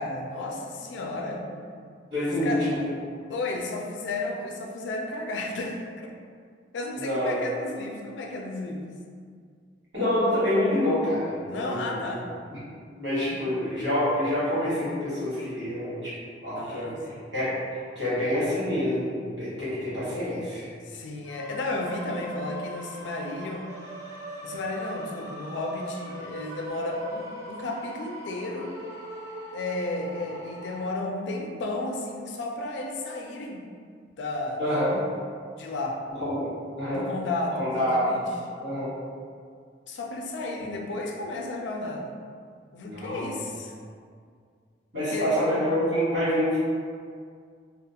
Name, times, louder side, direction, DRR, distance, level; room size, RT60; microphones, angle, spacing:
voice 1, 0.0-1.4 2.4-2.6 3.3-6.1 6.7-8.8 11.4-12.3 16.6-17.2 20.8-23.7 24.4-28.7 29.5-33.7 34.2-35.0 35.6-36.0 36.9-38.3 39.9-42.1 42.7-43.7 45.1-45.4, left 2 dB, 75° left, 1 dB, 0.4 m, -33 dB
voice 2, 2.1-2.9 6.9-7.5 9.9-12.1 12.5-12.6 12.9-16.2 16.4-17.6 18.0-20.7 34.6-35.0 36.1-37.1 37.6-38.0 38.6-38.9 42.8-43.3 44.9-46.6, left 1 dB, 80° right, -11 dB, 1.2 m, -27 dB
sound 1, 21.2-30.8, equal, 20° right, 0.4 m, -40 dB
2.4 x 2.3 x 2.7 m, 2.1 s
head